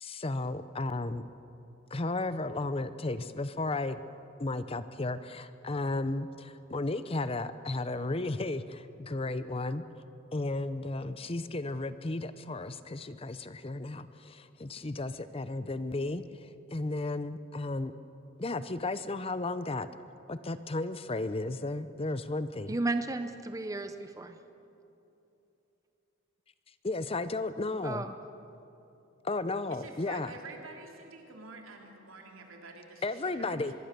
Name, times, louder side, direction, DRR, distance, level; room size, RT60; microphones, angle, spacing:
voice 1, 0.0-1.3 1.9-4.0 4.4-9.8 10.3-17.9 18.4-19.9 20.3-22.7 26.8-28.1 29.2-30.3 33.0-33.7, left 2 dB, 30° left, 13 dB, 0.6 m, -34 dB
voice 2, 22.7-24.4 27.8-28.2, right 2 dB, 15° right, 8 dB, 0.7 m, -33 dB
voice 3, 29.7-33.7, right 3 dB, 85° right, 1 dB, 3.4 m, -48 dB
24.5 x 22.5 x 6.8 m, 2.9 s
head